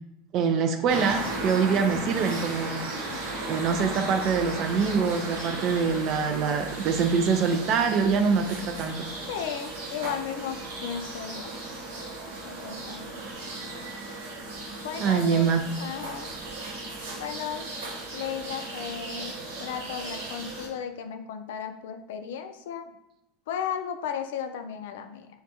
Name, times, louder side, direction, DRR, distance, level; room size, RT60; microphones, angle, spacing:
voice 1, 0.3-2.8 3.5-9.1 15.0-15.6, right 6 dB, 50° right, 6 dB, 0.3 m, -24 dB
sound 1, 0.9-20.7, right 2 dB, 75° right, 0.8 m, -36 dB
voice 2, 9.3-11.5 12.4-13.2 14.8-16.3 17.2-17.6 18.1-22.9 23.5-25.3, left 8 dB, 70° left, 7 dB, 0.3 m, -35 dB
3.2 x 2.3 x 2.7 m, 0.88 s
hypercardioid pair, 80°, 0 cm